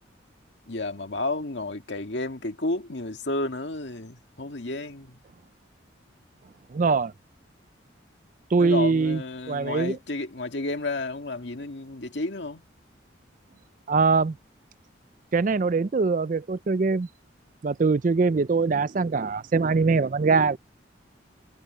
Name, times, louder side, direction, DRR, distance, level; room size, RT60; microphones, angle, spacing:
voice 1, 0.7-5.2 8.6-12.6, left 2 dB, 65° left, 2.0 m, -31 dB
voice 2, 6.7-7.1 8.5-9.2 9.5-10.0 13.9-14.3 15.3-17.1 17.6-20.6, right 4 dB, 40° right, 0.4 m, -22 dB
head